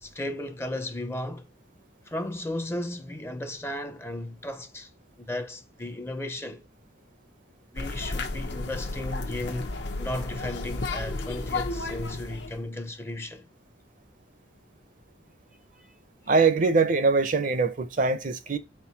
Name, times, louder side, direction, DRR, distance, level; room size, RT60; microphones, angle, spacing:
voice 1, 0.0-1.5 2.1-4.9 5.2-6.6 7.7-13.5, left 1 dB, 15° left, 0.5 m, -35 dB
sound 1, 7.8-12.6, left 2 dB, 70° left, 0.9 m, -33 dB
voice 2, 16.3-18.6, right 4 dB, 45° right, 0.6 m, -22 dB
4.4 x 4.0 x 5.6 m
head